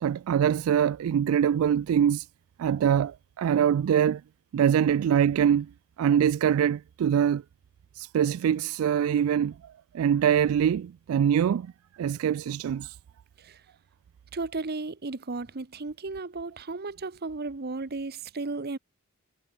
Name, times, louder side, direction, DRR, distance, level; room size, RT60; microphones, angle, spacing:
voice 1, 0.0-2.3 2.6-4.2 4.5-5.7 6.0-7.4 8.0-9.5 9.9-11.7 12.0-13.0, right 8 dB, 75° right, 0.3 m, -24 dB
voice 2, 14.3-18.8, right 3 dB, 50° right, 0.9 m, -34 dB
head